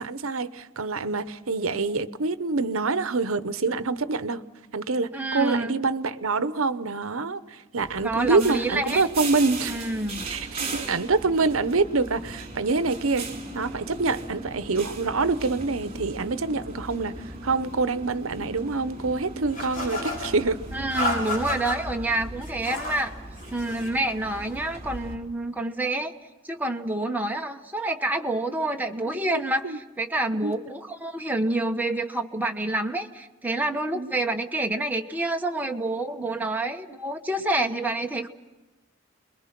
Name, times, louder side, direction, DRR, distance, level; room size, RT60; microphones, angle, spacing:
voice 1, 0.0-4.4 4.7-9.7 10.2-13.3 13.5-20.6 29.6-29.8 30.4-30.5 33.9-34.1, right 3 dB, 75° right, 0.9 m, -26 dB
voice 2, 5.1-5.8 8.0-9.1 9.7-10.3 20.7-23.1 23.5-26.1 26.4-38.3, right 2 dB, 10° right, 1.1 m, -28 dB
sound 1, 7.8-25.2, right 3 dB, 30° right, 3.6 m, -38 dB
awesome evil laugh, 19.5-20.3 20.9-21.8 22.4-23.0 23.4-24.0, left 2 dB, 40° left, 7.1 m, -31 dB
28.5 x 22.0 x 6.0 m
head